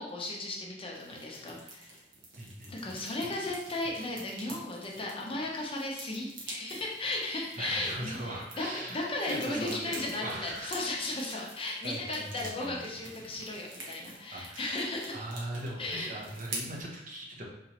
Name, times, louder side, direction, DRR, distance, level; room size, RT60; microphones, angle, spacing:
voice 1, 0.0-2.0 2.7-15.3 15.8-16.2, left 2 dB, 30° left, -2 dB, 0.6 m, -35 dB
sound 1, 0.9-16.8, right 2 dB, 90° right, 1.0 m, -47 dB
voice 2, 2.4-2.7 7.6-10.9 11.8-12.8 14.3-14.7 15.1-17.4, right 1 dB, 45° right, -2 dB, 0.8 m, -39 dB
4.0 x 3.0 x 2.9 m, 0.85 s
head